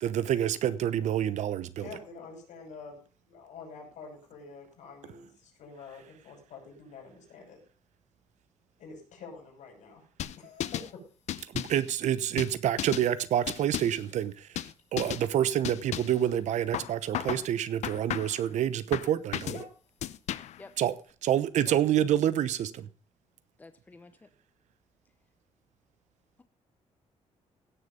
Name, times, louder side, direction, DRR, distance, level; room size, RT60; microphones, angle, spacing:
voice 1, 0.0-1.9 11.5-14.5 14.9-19.5 20.8-20.9 21.2-22.9, right 11 dB, 75° right, 0.9 m, -27 dB
voice 2, 1.8-3.0 3.3-7.6 8.8-10.0 10.4-11.0 19.5-19.6, left 4 dB, 85° left, 6.0 m, -46 dB
sound 1, 10.2-10.9 11.3-11.8 12.4-13.1 13.5-14.0 14.6-14.7 15.0-15.3 15.6-16.2 16.7-17.5 17.8-18.4 18.9-19.6 20.0-20.6, left 12 dB, 70° left, 0.7 m, -34 dB
voice 3, 23.6-24.3, left 3 dB, 15° left, 0.8 m, -50 dB
16.5 x 6.9 x 5.2 m
wide cardioid pair, 180°, 12 cm